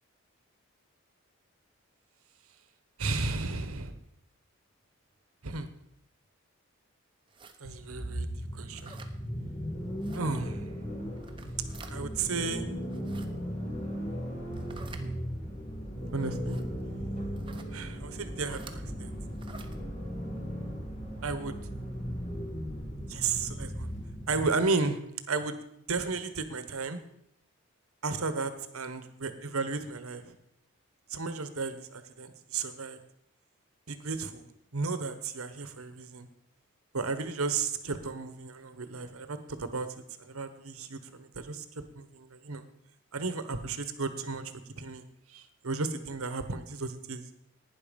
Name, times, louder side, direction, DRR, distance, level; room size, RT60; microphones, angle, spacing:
voice 1, 3.0-4.0 5.4-5.7 7.6-9.0 10.1-10.7 11.9-12.7 15.0-15.2 16.1-16.6 17.7-19.1 21.2-21.6 23.1-23.9 24.3-25.0 25.3-25.6 25.9-27.0 28.0-30.3 31.1-33.0 33.9-34.4 34.7-36.3 36.9-39.9 40.2-42.6 43.1-45.0 45.3-47.2, right 4 dB, 90° right, 11 dB, 1.2 m, -34 dB
sound 1, 7.3-7.6 8.7-9.1 10.0-10.2 11.2-11.9 12.8-13.3 14.5-15.1 16.2-16.6 17.3-17.7 18.5-18.8 19.3-19.8, right 4 dB, 25° right, 0.9 m, -50 dB
sound 2, 7.6-24.5, equal, 35° left, 2.3 m, -37 dB
11.5 x 9.7 x 5.3 m, 0.78 s
head